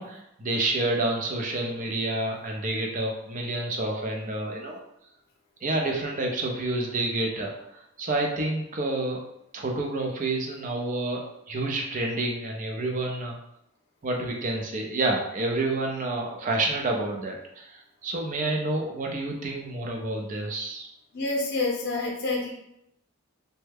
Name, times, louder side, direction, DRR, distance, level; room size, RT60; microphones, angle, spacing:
voice 1, 0.0-4.8 5.6-9.2 9.5-13.4 14.0-20.9, right 2 dB, 40° right, 1 dB, 0.5 m, -29 dB
voice 2, 21.1-22.5, left 3 dB, 55° left, -2 dB, 0.7 m, -27 dB
3.2 x 2.2 x 3.4 m, 0.79 s
head